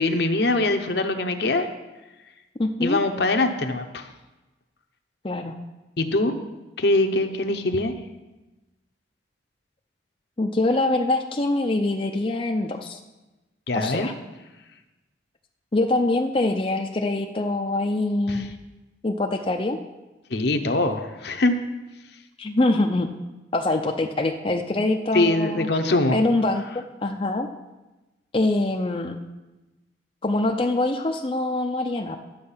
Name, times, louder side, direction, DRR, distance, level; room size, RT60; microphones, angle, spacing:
voice 1, 0.0-1.7 2.8-4.1 6.0-6.3 6.8-7.9 13.7-14.1 18.3-18.5 20.3-21.6 25.1-26.1, left 2 dB, 60° left, 7 dB, 0.8 m, -23 dB
voice 2, 2.6-3.0 5.2-5.6 10.4-13.0 13.7-14.1 15.7-18.5 19.0-19.8 22.4-23.1 23.5-25.7 26.1-27.5 28.3-29.2 30.2-32.2, left 2 dB, 30° left, 3 dB, 0.5 m, -24 dB
11.5 x 7.6 x 5.6 m, 1.1 s
head